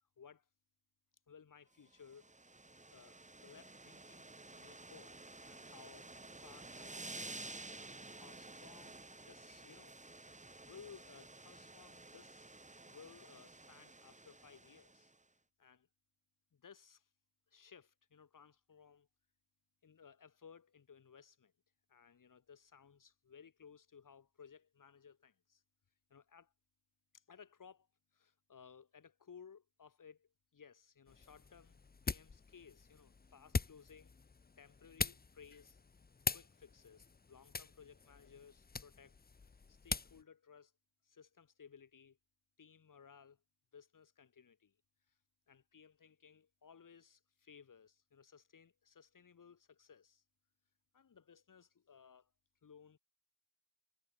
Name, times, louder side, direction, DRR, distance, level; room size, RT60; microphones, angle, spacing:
voice 1, 0.2-0.5 1.3-2.3 2.9-4.3 4.6-6.1 6.4-7.6 8.1-9.0 9.2-10.0 10.6-12.5 12.8-15.1 15.6-15.9 16.5-17.1 17.5-19.1 19.8-21.5 21.9-25.6 26.1-26.5 27.1-27.9 28.1-34.1 34.6-35.8 36.3-39.2 39.4-40.7 41.0-42.2 42.6-43.4 43.7-44.8 45.1-45.2 45.5-50.2 50.9-52.3 52.6-53.0, left 6 dB, 50° left, 2.9 m, -60 dB
sound 1, 1.9-15.2, right 2 dB, 15° right, 4.0 m, -52 dB
sound 2, 31.1-40.2, left 4 dB, 25° left, 0.9 m, -43 dB
wide cardioid pair, 150°, 40 cm